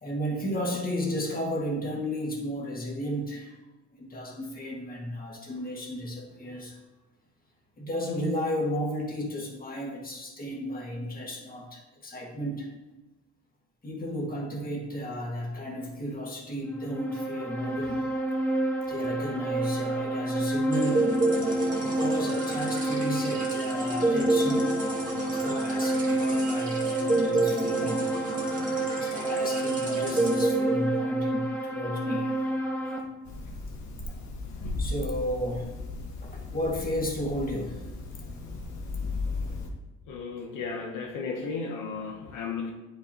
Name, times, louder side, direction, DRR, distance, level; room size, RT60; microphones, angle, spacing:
voice 1, 0.0-3.6 4.0-6.8 7.8-12.7 13.8-18.1 18.8-21.1 21.8-24.7 25.2-28.0 28.9-32.5 34.1-34.2 34.8-35.7 36.2-37.8, equal, 30° left, -2 dB, 2.0 m, -33 dB
sound 1, 16.7-33.0, right 2 dB, 5° left, 1.3 m, -29 dB
sound 2, 20.7-31.2, right 2 dB, 25° right, 2.0 m, -30 dB
sound 3, 33.2-39.7, left 3 dB, 65° left, 1.4 m, -36 dB
voice 2, 40.1-42.7, left 4 dB, 80° left, 1 dB, 1.0 m, -34 dB
9.2 x 5.7 x 2.9 m, 1.1 s
cardioid pair, 90°, 30 cm